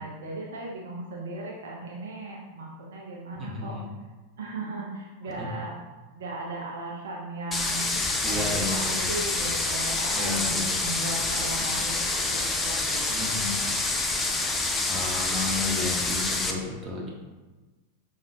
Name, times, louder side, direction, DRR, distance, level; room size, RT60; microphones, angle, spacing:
voice 1, 0.0-3.8 4.4-5.7 6.1-13.5, right 2 dB, 60° right, -3 dB, 0.5 m, -37 dB
voice 2, 3.3-3.9 5.2-5.3 8.2-9.1 10.1-10.8 13.1-13.6 14.9-17.1, left 3 dB, 20° right, -3 dB, 1.0 m, -32 dB
sound 1, 7.5-16.5, left 3 dB, 15° left, 0.4 m, -27 dB
5.3 x 2.4 x 2.7 m, 1.2 s
figure-of-eight pair, 90°, 0 cm